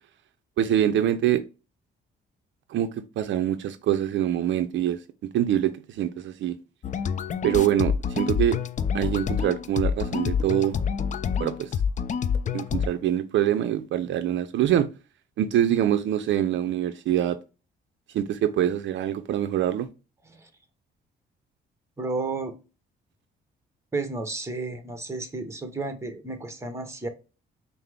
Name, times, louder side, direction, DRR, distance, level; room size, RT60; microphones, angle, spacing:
voice 1, 0.6-1.4 2.7-5.0 5.3-6.5 7.4-8.6 8.9-10.8 11.4-11.7 12.5-14.9 15.4-17.4 18.1-19.9, right 11 dB, 70° right, 0.5 m, -24 dB
sound 1, 6.8-12.9, left 7 dB, 40° left, 0.4 m, -27 dB
voice 2, 22.0-22.5 23.9-27.1, right 3 dB, 15° right, 0.9 m, -32 dB
5.6 x 2.0 x 3.4 m
cardioid pair, 90°, 20 cm